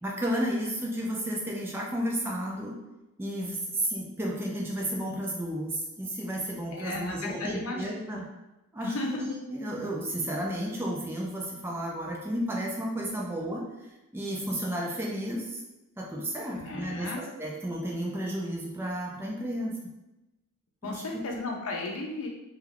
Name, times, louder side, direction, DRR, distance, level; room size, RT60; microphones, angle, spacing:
voice 1, 0.0-2.8 3.2-8.2 8.7-13.6 14.1-15.6 16.0-19.8 20.8-21.2, equal, 10° right, -3 dB, 0.3 m, -32 dB
voice 2, 6.7-7.8 8.1-8.2 8.8-9.3 16.5-17.2 20.8-22.3, left 2 dB, 65° left, 1 dB, 0.5 m, -34 dB
2.3 x 2.2 x 3.3 m, 0.97 s
head